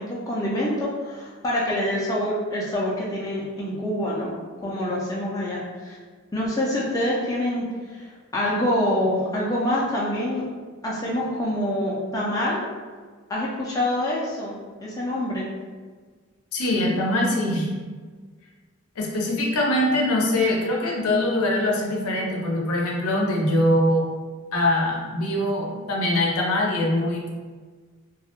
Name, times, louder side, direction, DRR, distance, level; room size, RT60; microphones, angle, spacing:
voice 1, 0.0-4.4 4.6-6.0 6.3-10.4 10.8-12.6 13.3-15.5, left 1 dB, 15° left, -5 dB, 0.3 m, -26 dB
voice 2, 16.5-17.7 19.0-24.1 24.5-27.3, left 1 dB, 85° left, -2 dB, 0.5 m, -23 dB
2.2 x 2.0 x 2.8 m, 1.5 s
head